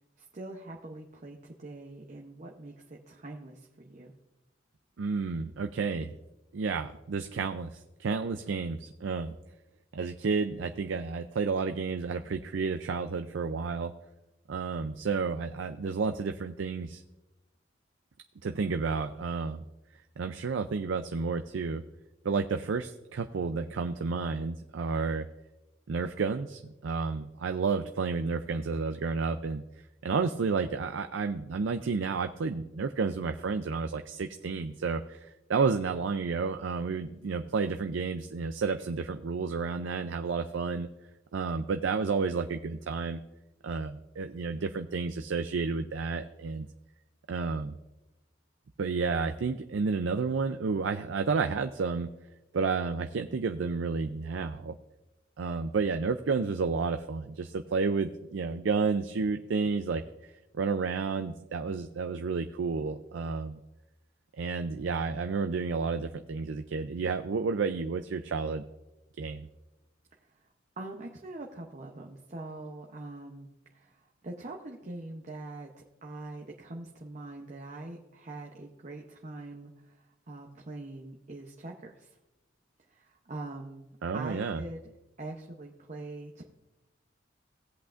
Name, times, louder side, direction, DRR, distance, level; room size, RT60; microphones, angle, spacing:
voice 1, 0.2-4.1 70.8-82.1 82.9-84.8 85.2-86.4, right 2 dB, 40° right, 1 dB, 0.8 m, -43 dB
voice 2, 5.0-6.1 6.5-9.3 9.9-13.9 14.5-17.0 18.4-19.6 20.2-21.8 22.2-25.2 25.9-29.6 30.0-40.9 41.3-43.2 43.6-46.7 47.3-47.7 48.8-52.1 52.5-54.7 55.4-60.0 60.5-63.6 64.4-68.6 69.2-69.4 84.0-84.6, right 4 dB, 75° right, 8 dB, 0.4 m, -31 dB
17.0 x 8.2 x 2.5 m, 0.99 s
head